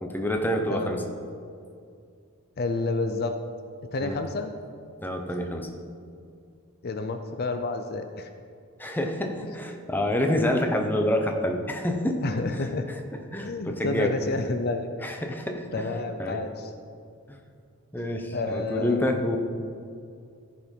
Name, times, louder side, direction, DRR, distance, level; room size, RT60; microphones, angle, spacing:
voice 1, 0.0-1.0 4.0-4.2 5.0-5.7 8.8-12.2 12.5-13.0 13.3-14.2 15.0-16.4 17.3-17.4 17.9-19.4, left 1 dB, 10° left, 4 dB, 0.8 m, -28 dB
voice 2, 0.7-1.0 2.6-3.4 3.9-4.5 6.8-8.3 9.4-9.5 12.2-12.9 13.4-14.9 15.7-16.7 18.3-19.1, left 3 dB, 45° left, 7 dB, 0.5 m, -29 dB
14.5 x 5.2 x 5.3 m, 2.3 s
head